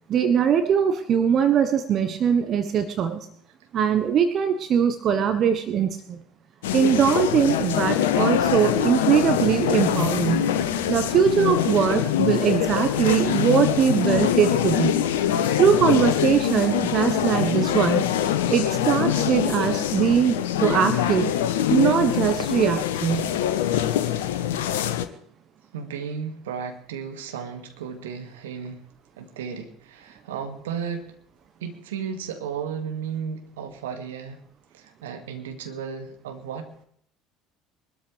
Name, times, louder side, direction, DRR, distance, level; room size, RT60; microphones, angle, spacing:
voice 1, 0.1-3.3 3.7-6.2 6.7-10.5 10.9-15.0 15.6-18.1 18.5-21.3 21.7-23.3, right 8 dB, 45° right, 9 dB, 1.3 m, -21 dB
sound 1, 6.6-25.1, left 10 dB, 70° left, 1.2 m, -24 dB
voice 2, 25.7-28.8 29.2-31.1 31.6-34.4 34.7-36.9, right 7 dB, 75° right, 5 dB, 2.2 m, -34 dB
23.0 x 13.0 x 3.5 m, 0.65 s
figure-of-eight pair, 65°, 0 cm